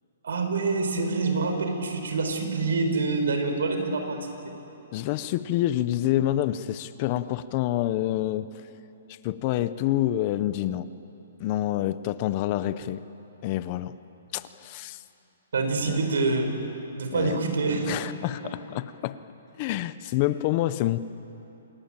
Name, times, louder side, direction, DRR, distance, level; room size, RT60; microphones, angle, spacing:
voice 1, 0.2-4.2 15.5-16.5 16.9-17.9 18.4-18.5, right 3 dB, 80° right, 5 dB, 4.9 m, -26 dB
voice 2, 4.9-8.5 9.1-10.9 11.4-13.0 13.4-13.9 14.3-15.0 15.9-16.0 17.1-17.5 17.9-19.2 19.6-21.0, left 14 dB, 25° left, 15 dB, 0.5 m, -27 dB
27.5 x 21.0 x 8.9 m, 3.0 s
hypercardioid pair, 175°, 0 cm